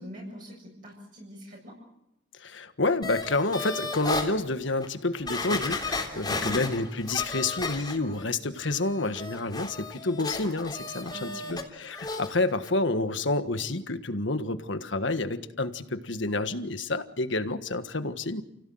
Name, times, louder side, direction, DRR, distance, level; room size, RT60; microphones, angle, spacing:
voice 1, 0.0-1.8 6.2-6.7 11.1-11.6, left 1 dB, 45° right, -4 dB, 7.6 m, -43 dB
voice 2, 2.4-18.4, left 2 dB, 65° left, 10 dB, 1.5 m, -29 dB
sound 1, 3.0-4.3 4.8-4.9 5.3-8.2 8.6-11.6 11.9-12.3 12.6-12.7, left 3 dB, 20° left, 3.4 m, -34 dB
29.5 x 17.0 x 7.8 m, 0.85 s
head